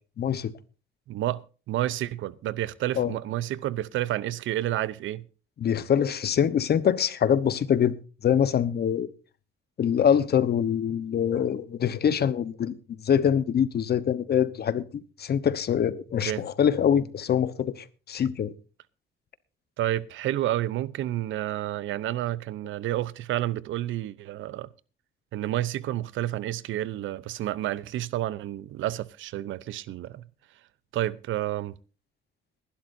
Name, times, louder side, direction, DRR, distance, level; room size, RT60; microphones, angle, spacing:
voice 1, 0.2-0.5 3.0-3.1 5.6-7.9 8.2-9.1 9.8-12.8 13.0-14.8 15.2-18.5, left 8 dB, 55° left, 1.0 m, -24 dB
voice 2, 1.1-5.3 16.3-16.4 19.8-24.7 25.3-30.3 30.9-31.7, right 13 dB, 80° right, 0.7 m, -30 dB
21.5 x 11.5 x 2.7 m
cardioid pair, 90°, 20 cm